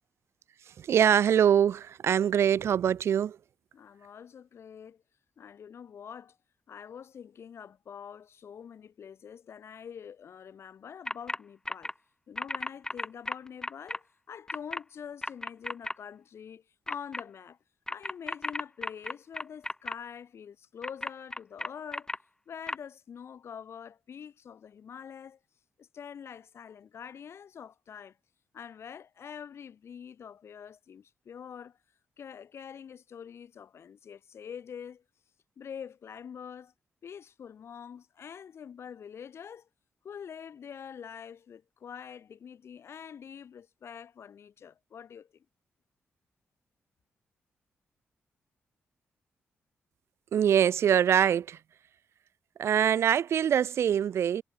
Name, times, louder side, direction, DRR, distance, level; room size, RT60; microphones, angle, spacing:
voice 1, 0.8-3.4 50.3-51.6 52.6-54.4, right 9 dB, 70° right, 0.5 m, -24 dB
voice 2, 3.7-5.0 5.4-6.4 6.7-11.9 12.3-17.6 17.9-22.1 22.5-25.4 25.8-28.2 28.5-31.8 32.2-35.0 35.6-36.7 37.0-39.7 40.0-45.5, left 7 dB, 65° left, 5.5 m, -45 dB
sound 1, 11.1-11.4 11.6-11.9 12.4-14.0 14.5-14.8 15.2-15.9 16.9-17.2 17.9-19.9 20.8-22.2 22.7-22.8, left 1 dB, 15° left, 1.5 m, -34 dB
cardioid pair, 70°, 5 cm